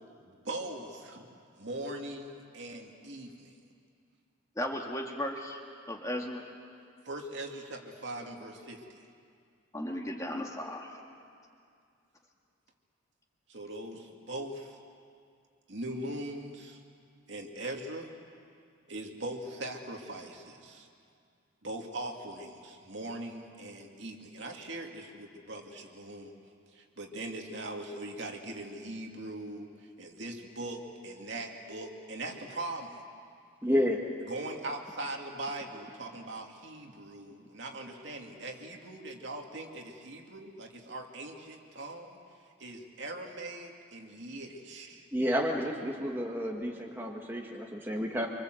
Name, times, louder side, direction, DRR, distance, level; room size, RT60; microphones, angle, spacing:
voice 1, 0.2-1.3 1.6-3.5 7.1-9.0 13.5-14.8 15.7-16.8 17.3-18.1 18.9-20.9 21.6-26.3 26.7-29.7 30.0-33.0 34.2-42.2 42.6-45.1, right 1 dB, 60° right, 1 dB, 2.6 m, -41 dB
voice 2, 4.6-5.6 5.9-6.5 9.7-11.0 14.4-14.5, left 1 dB, 15° left, 1 dB, 2.0 m, -36 dB
voice 3, 33.6-34.0 45.1-48.3, equal, 10° right, 0 dB, 1.6 m, -30 dB
27.0 x 25.0 x 7.9 m, 2.3 s
head